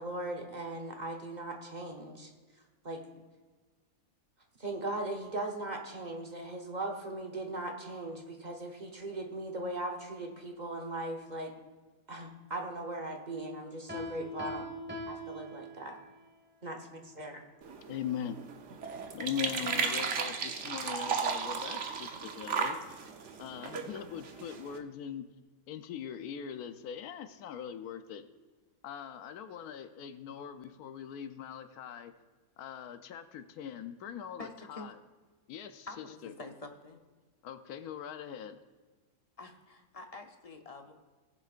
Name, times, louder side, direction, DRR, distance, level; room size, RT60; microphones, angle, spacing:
voice 1, 0.0-2.3 2.8-3.1 4.6-11.5 12.1-14.7 15.1-16.0 16.6-17.4, right 2 dB, 35° right, 2 dB, 1.0 m, -39 dB
Piano, 13.9-16.2, equal, 5° right, 1.4 m, -42 dB
sound 1, 17.6-24.8, right 6 dB, 55° right, 1.1 m, -35 dB
voice 2, 17.9-18.4 19.1-22.8 23.4-25.3 25.7-28.3 28.8-32.1 32.6-35.0 35.5-36.3 37.4-38.6, left 9 dB, 85° left, 9 dB, 1.1 m, -41 dB
voice 3, 34.4-34.9 35.9-37.0 39.4-40.9, left 2 dB, 35° left, 4 dB, 0.6 m, -47 dB
19.0 x 7.3 x 2.5 m, 1.4 s
omnidirectional pair, 1.6 m